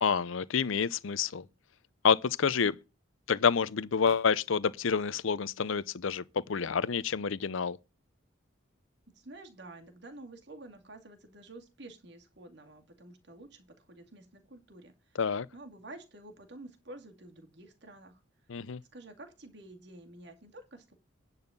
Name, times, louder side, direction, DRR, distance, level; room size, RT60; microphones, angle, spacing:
voice 1, 0.0-1.4 2.0-2.7 3.3-7.8 15.2-15.5 18.5-18.8, left 6 dB, 75° left, 0.6 m, -28 dB
voice 2, 9.1-15.2 15.5-18.2 18.9-20.9, right 2 dB, 55° right, 2.2 m, -50 dB
10.5 x 4.2 x 7.1 m
head